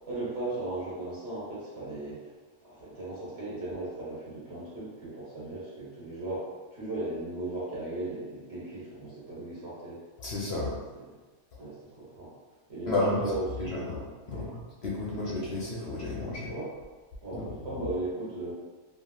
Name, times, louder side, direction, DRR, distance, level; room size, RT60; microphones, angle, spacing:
voice 1, 0.1-2.3 2.6-10.0 11.6-12.3 12.7-12.9 13.2-13.9 14.3-14.5 16.5-16.7 17.2-18.5, right 2 dB, 55° right, -8 dB, 1.3 m, -37 dB
voice 2, 10.2-10.8 12.9-13.2 13.6-16.5 17.3-17.8, left 2 dB, 65° left, -5 dB, 0.7 m, -32 dB
3.1 x 2.6 x 2.2 m, 1.3 s
omnidirectional pair, 1.4 m